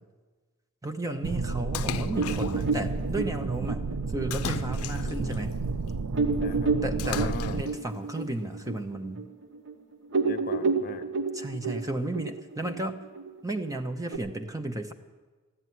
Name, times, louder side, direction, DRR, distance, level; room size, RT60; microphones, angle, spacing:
voice 1, 0.8-5.6 6.8-9.2 11.3-13.0 13.4-14.9, right 1 dB, 15° right, 7 dB, 0.8 m, -33 dB
sound 1, 1.2-7.6, right 3 dB, 85° right, 0.5 m, -32 dB
Splash splatter, 1.7-2.7 4.3-5.4 7.0-7.8, left 7 dB, 70° left, 0.5 m, -36 dB
sound 2, 2.1-5.2 5.7-5.8 6.1-9.7 10.0-14.2, right 4 dB, 55° right, 1.1 m, -31 dB
voice 2, 5.1-5.4 6.4-6.7 7.0-7.6 10.2-11.1, left 4 dB, 45° left, 8 dB, 1.0 m, -39 dB
14.0 x 9.5 x 9.4 m, 1.3 s
head